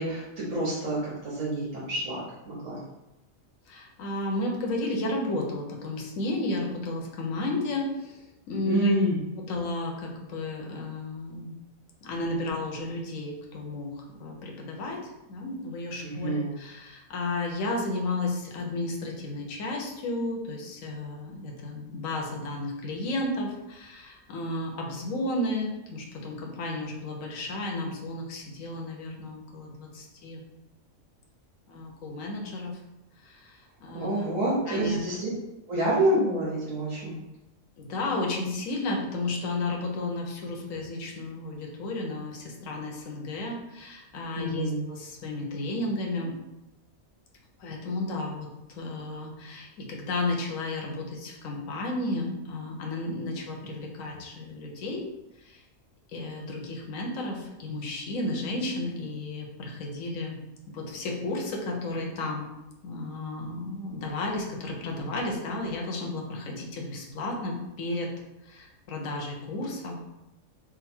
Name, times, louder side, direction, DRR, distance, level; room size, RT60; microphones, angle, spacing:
voice 1, 0.0-2.8 8.7-9.2 16.0-16.5 33.9-35.3 35.7-37.1 44.3-44.8, right 1 dB, 70° right, -7 dB, 1.4 m, -28 dB
voice 2, 3.7-8.9 9.4-11.5 12.0-30.4 31.7-32.8 33.2-34.1 34.7-35.0 37.8-46.3 47.6-55.1 55.4-55.6 56.1-60.4 60.7-62.5 62.8-68.1 68.4-70.0, left 2 dB, 80° left, 0 dB, 1.2 m, -33 dB
3.9 x 2.2 x 4.3 m, 0.97 s
omnidirectional pair, 1.4 m